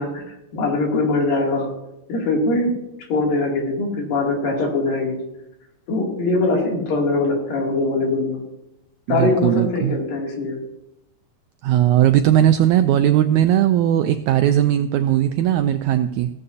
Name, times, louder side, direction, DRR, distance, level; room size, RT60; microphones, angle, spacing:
voice 1, 0.0-1.7 2.1-2.7 3.1-5.2 5.9-8.4 9.1-10.6, left 2 dB, 80° left, -1 dB, 4.5 m, -22 dB
voice 2, 9.1-10.0 11.6-16.3, right 11 dB, 90° right, 9 dB, 1.7 m, -18 dB
15.5 x 15.5 x 2.8 m, 0.86 s
omnidirectional pair, 3.9 m